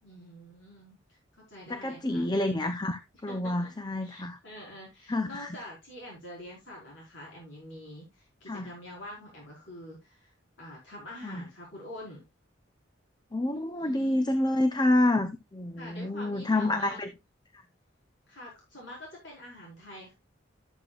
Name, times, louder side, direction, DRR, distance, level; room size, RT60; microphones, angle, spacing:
voice 1, 0.0-2.3 3.3-3.7 4.0-12.2 13.8-14.3 15.8-17.1 18.3-20.1, left 1 dB, 65° left, 4.8 m, -46 dB
voice 2, 1.7-4.4 5.1-5.5 8.5-8.7 11.2-11.4 13.3-17.1, left 1 dB, 20° left, 0.7 m, -28 dB
13.0 x 8.0 x 2.4 m
head